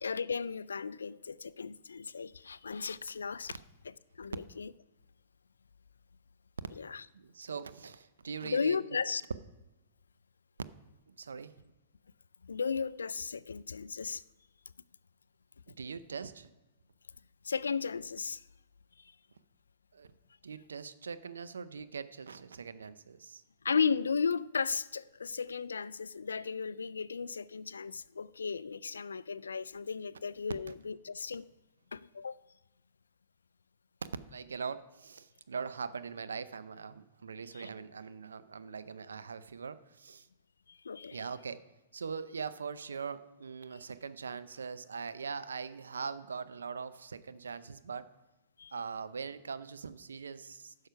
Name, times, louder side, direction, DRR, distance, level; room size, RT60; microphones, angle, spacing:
voice 1, 0.0-3.6 4.2-4.7 6.8-7.0 8.4-9.2 12.4-14.2 17.4-18.4 23.6-31.5 31.9-32.4 37.5-37.6 40.7-41.2 48.6-48.7, left 5 dB, 85° left, 0.3 m, -35 dB
voice 2, 7.1-8.8 11.1-11.5 15.7-16.5 19.9-20.1 20.4-23.4 30.7-30.8 34.3-40.3 41.1-41.6 41.9-48.1 48.7-50.9, right 5 dB, 85° right, 0.6 m, -42 dB
10.5 x 6.5 x 5.7 m
hypercardioid pair, 120°, 0 cm